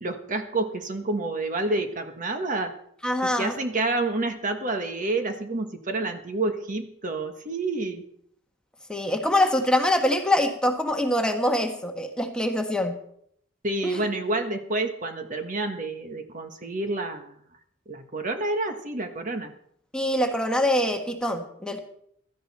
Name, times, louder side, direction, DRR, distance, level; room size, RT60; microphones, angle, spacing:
voice 1, 0.0-2.7 3.2-8.0 13.6-17.3 17.9-19.5, right 2 dB, 40° right, 6 dB, 1.4 m, -29 dB
voice 2, 3.0-3.5 8.9-13.0 13.8-14.0 19.9-21.8, left 1 dB, 5° left, 3 dB, 1.4 m, -24 dB
17.0 x 13.0 x 4.3 m, 0.67 s
head